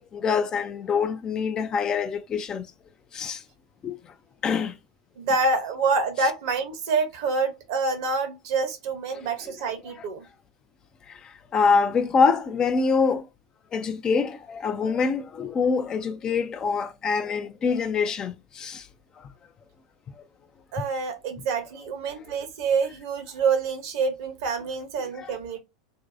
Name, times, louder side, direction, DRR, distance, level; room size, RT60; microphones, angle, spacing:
voice 1, 0.0-2.7 3.1-3.4 3.8-4.0 4.4-4.7 9.1-9.2 11.1-11.2 11.5-13.2 13.7-18.8 19.2-19.3 22.4-22.5 25.2-25.3, left 5 dB, 30° left, 0.4 m, -25 dB
voice 2, 5.2-10.2 20.7-25.6, right 4 dB, 60° right, 0.9 m, -27 dB
2.6 x 2.2 x 2.5 m
figure-of-eight pair, 85°, 3 cm